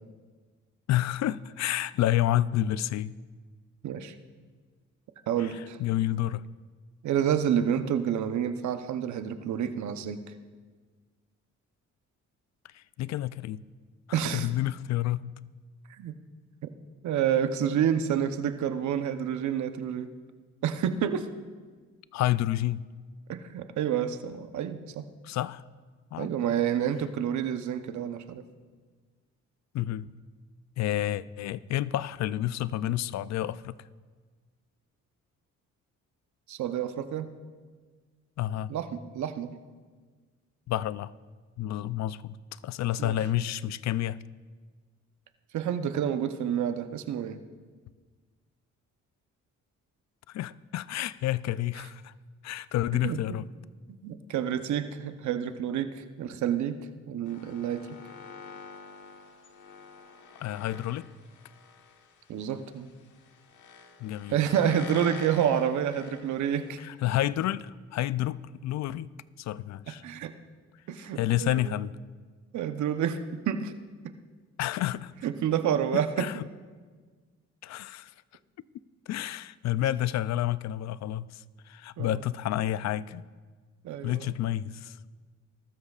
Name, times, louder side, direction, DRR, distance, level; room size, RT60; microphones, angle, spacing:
voice 1, 0.9-3.1 5.4-5.5 5.8-6.4 12.7-13.6 14.1-15.2 22.1-22.8 25.2-25.6 26.1-26.3 29.7-30.1 30.8-33.7 38.4-38.7 40.7-41.1 41.6-42.4 42.6-44.2 50.3-52.1 52.4-53.5 60.4-61.1 64.0-64.4 66.8-69.1 69.4-70.0 71.2-71.9 74.6-75.1 76.2-76.4 77.6-78.1 79.1-83.3 84.0-85.0, left 13 dB, 65° left, 17 dB, 0.5 m, -29 dB
voice 2, 3.8-4.1 5.3-5.8 7.0-10.2 14.1-14.5 16.0-16.1 17.0-20.1 20.6-21.3 23.3-25.0 26.2-28.4 36.5-37.3 38.7-39.5 43.0-43.2 45.5-47.4 53.0-53.2 53.9-56.8 57.1-57.8 62.3-62.9 64.3-66.8 70.0-70.3 70.9-71.8 72.5-73.2 73.5-73.7 75.2-76.3 82.0-82.2 83.8-84.3, right 9 dB, 70° right, 9 dB, 0.9 m, -29 dB
sound 1, 57.2-66.8, left 5 dB, 80° left, 1.3 m, -48 dB
20.5 x 13.0 x 2.4 m, 1.5 s
cardioid pair, 90°, 30 cm